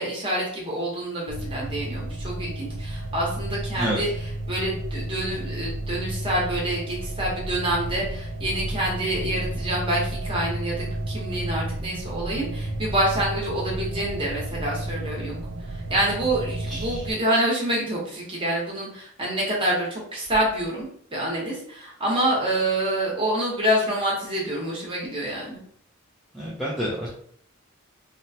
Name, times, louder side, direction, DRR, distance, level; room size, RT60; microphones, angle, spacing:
voice 1, 0.0-15.4 15.7-20.9 21.1-25.6, right 1 dB, 25° right, -4 dB, 0.9 m, -27 dB
sound 1, 1.3-17.1, right 1 dB, 65° right, 0.4 m, -32 dB
voice 2, 16.7-17.0 26.3-27.1, equal, ahead, -7 dB, 0.4 m, -28 dB
3.0 x 2.1 x 2.7 m, 0.62 s
head